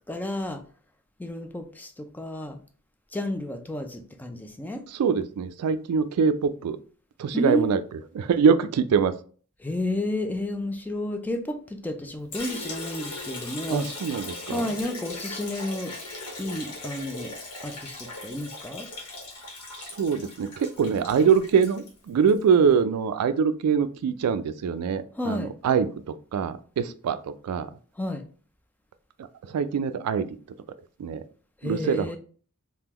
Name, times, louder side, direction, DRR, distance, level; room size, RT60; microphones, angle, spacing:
voice 1, 0.1-0.6 1.2-2.6 3.1-4.8 7.3-7.7 9.6-13.9 14.5-15.9 16.4-17.3 17.6-18.9 25.1-25.5 28.0-28.2 31.6-32.2, left 1 dB, 10° left, 6 dB, 0.3 m, -31 dB
voice 2, 4.9-6.8 7.2-7.8 8.2-9.1 13.7-14.7 19.8-27.7 29.4-30.3 31.0-31.2 31.6-32.2, right 6 dB, 85° right, 12 dB, 0.3 m, -24 dB
Liquid, 12.3-22.4, left 2 dB, 80° left, 1.0 m, -39 dB
3.6 x 2.2 x 2.9 m, 0.42 s
head